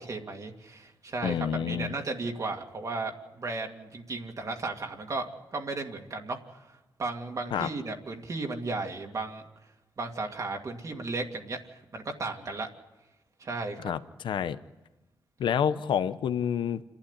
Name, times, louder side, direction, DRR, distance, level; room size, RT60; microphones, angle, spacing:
voice 1, 0.0-6.6 7.0-9.4 10.0-11.6 11.9-12.7 13.4-13.9, right 3 dB, 45° right, 2 dB, 2.2 m, -35 dB
voice 2, 1.2-1.9 7.5-7.7 13.8-14.6 15.4-16.8, left 8 dB, 80° left, 13 dB, 0.8 m, -28 dB
28.5 x 11.5 x 9.8 m, 1.1 s
cardioid pair, 110°, 8 cm